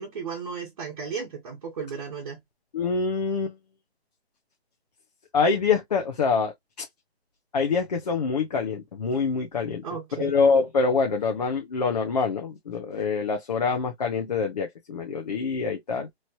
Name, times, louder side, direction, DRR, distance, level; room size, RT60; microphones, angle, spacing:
voice 1, 0.0-2.4 9.8-10.4, right 6 dB, 35° right, 1.2 m, -35 dB
voice 2, 2.7-3.6 5.3-6.9 7.5-9.8 10.2-16.1, left 5 dB, 40° left, 0.7 m, -25 dB
3.2 x 2.8 x 2.6 m
hypercardioid pair, 165°, 32 cm